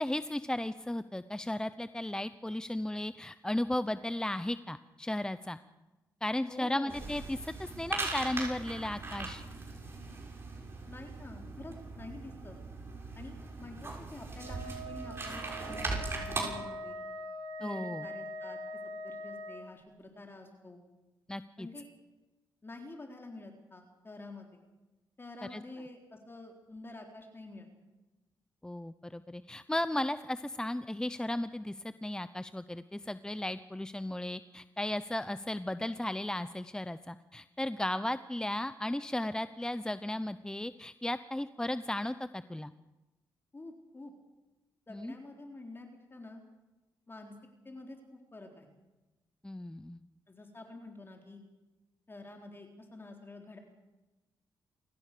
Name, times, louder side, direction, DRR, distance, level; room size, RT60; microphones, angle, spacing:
voice 1, 0.0-5.6 6.2-9.4 17.6-18.1 21.3-21.7 25.5-25.6 28.6-42.7 44.9-45.1 49.4-50.0, left 1 dB, 10° left, 13 dB, 0.8 m, -35 dB
voice 2, 6.4-7.0 10.9-12.6 13.2-17.0 17.6-18.6 19.0-20.8 21.6-21.9 22.6-24.5 25.2-27.7 43.5-44.1 44.9-46.4 47.1-47.3 47.6-48.7 50.3-51.4 52.1-53.6, left 2 dB, 25° left, 3 dB, 3.8 m, -48 dB
sound 1, 6.9-16.4, right 2 dB, 30° right, 7.0 m, -40 dB
Wind instrument woodwind instrument, 14.3-19.6, equal, 85° right, 6.7 m, -42 dB
29.0 x 14.5 x 6.8 m, 1.1 s
cardioid pair, 75°, 8 cm